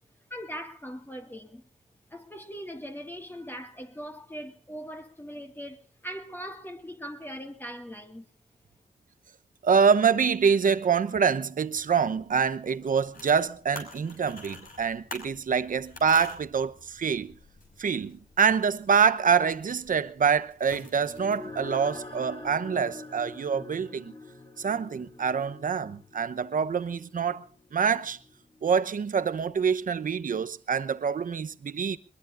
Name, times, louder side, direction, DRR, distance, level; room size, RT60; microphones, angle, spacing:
voice 1, 0.3-1.6 2.1-8.3, equal, 15° left, 2.0 m, -40 dB
voice 2, 9.6-17.3 17.8-24.1 24.6-27.4 27.7-28.2 28.6-32.0, right 6 dB, 65° right, 0.9 m, -25 dB
sound 1, 11.8-22.6, left 3 dB, 70° left, 6.0 m, -49 dB
sound 2, 20.7-29.6, left 3 dB, 30° left, 6.8 m, -46 dB
22.0 x 21.5 x 2.6 m
cardioid pair, 60°, 15 cm